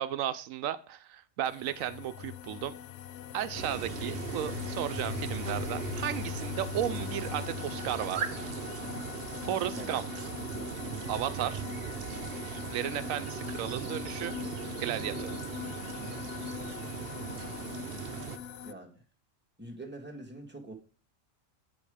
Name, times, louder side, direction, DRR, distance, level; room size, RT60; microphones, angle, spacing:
voice 1, 0.0-2.7 3.3-8.5 9.4-10.1 11.1-11.6 12.4-14.3 14.8-15.3, right 11 dB, 80° right, 12 dB, 1.0 m, -34 dB
sound 1, 1.4-18.7, left 10 dB, 65° left, 0.8 m, -41 dB
sound 2, 3.5-18.4, right 7 dB, 55° right, 0.9 m, -39 dB
voice 2, 18.6-18.9 19.6-20.7, right 1 dB, 10° right, 2 dB, 1.6 m, -44 dB
8.9 x 5.3 x 4.9 m, 0.36 s
omnidirectional pair, 1.4 m